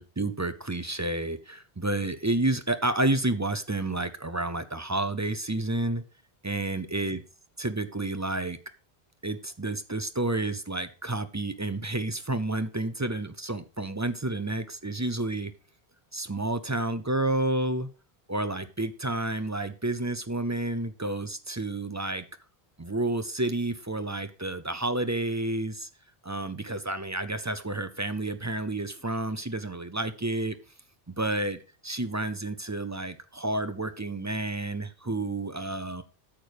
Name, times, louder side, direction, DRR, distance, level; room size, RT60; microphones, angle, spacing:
voice 1, 0.0-6.0 6.4-7.2 7.6-8.6 9.2-15.5 16.1-17.9 18.3-22.2 22.8-25.9 26.2-30.6 31.1-36.0, right 2 dB, 20° right, 10 dB, 0.5 m, -30 dB
8.8 x 6.3 x 5.1 m, 0.34 s
omnidirectional pair, 1.1 m